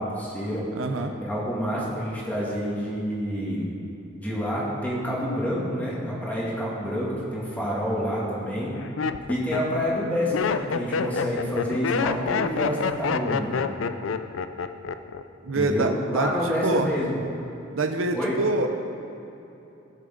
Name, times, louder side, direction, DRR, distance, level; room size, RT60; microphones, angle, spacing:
voice 1, 0.0-0.6 1.2-3.7 4.2-8.8 9.3-13.6 15.5-17.2 18.1-18.4, equal, 10° left, -6 dB, 2.2 m, -28 dB
voice 2, 0.7-1.2 15.4-16.9 17.7-18.7, right 2 dB, 80° right, 5 dB, 0.6 m, -25 dB
Laughter, 7.5-8.0 8.6-15.2 15.5-16.0, left 5 dB, 75° left, 0.4 m, -28 dB
16.0 x 6.7 x 3.8 m, 2.9 s
head